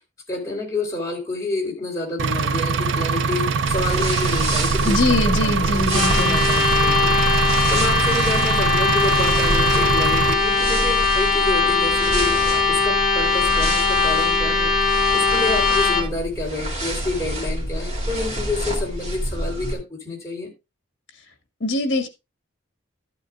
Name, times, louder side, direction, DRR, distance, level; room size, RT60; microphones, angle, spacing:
voice 1, 0.3-7.1 7.4-12.4 12.7-14.8 15.1-20.5, left 3 dB, 15° left, 3.7 m, -28 dB
Engine, 2.2-10.3, right 5 dB, 65° right, 0.4 m, -23 dB
sound 1, 3.7-19.7, right 1 dB, 35° right, 2.9 m, -27 dB
voice 2, 4.8-6.4 21.6-22.1, left 2 dB, 55° left, 2.1 m, -22 dB
sound 2, 5.8-16.0, left 4 dB, ahead, 4.2 m, -20 dB
13.5 x 9.1 x 2.4 m
head